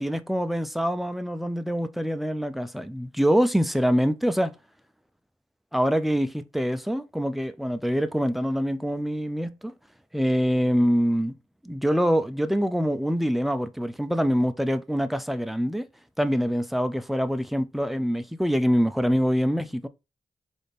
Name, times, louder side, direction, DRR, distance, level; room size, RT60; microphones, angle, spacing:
voice 1, 0.0-4.5 5.7-9.7 10.1-11.4 11.6-15.9 16.2-19.9, equal, ahead, 0.4 m, -25 dB
4.0 x 2.6 x 3.3 m
cardioid pair, 60°, 14 cm